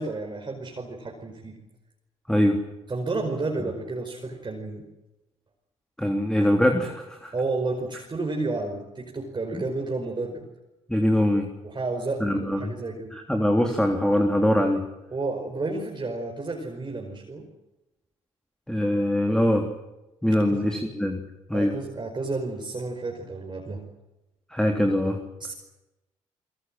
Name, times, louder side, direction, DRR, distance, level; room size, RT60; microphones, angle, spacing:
voice 1, 0.0-1.6 2.9-4.8 7.3-10.4 11.6-13.1 15.1-17.4 20.3-20.6 21.5-23.9 25.4-25.5, right 3 dB, 30° right, 1 dB, 5.1 m, -31 dB
voice 2, 2.3-2.6 6.0-7.3 9.5-9.6 10.9-11.5 12.2-12.7 13.1-14.8 18.7-19.7 20.2-21.2 21.5-21.8 24.5-25.2, left 1 dB, 5° left, 3 dB, 3.5 m, -23 dB
25.5 x 23.0 x 7.7 m, 1.0 s
figure-of-eight pair, 45°, 16 cm